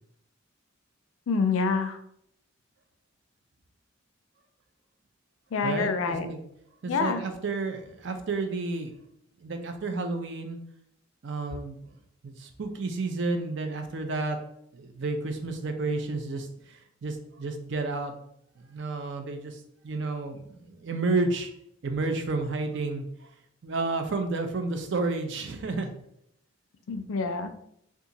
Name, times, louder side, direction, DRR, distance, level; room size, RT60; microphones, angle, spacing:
voice 1, 1.3-2.0 5.5-6.3 6.9-7.2 26.9-27.5, left 4 dB, 90° left, 9 dB, 0.4 m, -27 dB
voice 2, 5.6-6.4 6.8-8.9 9.4-10.6 11.2-11.8 12.2-14.4 14.7-18.1 18.6-21.5 21.8-23.3 23.6-25.9, right 3 dB, 60° right, 6 dB, 0.5 m, -31 dB
2.8 x 2.4 x 3.8 m, 0.73 s
head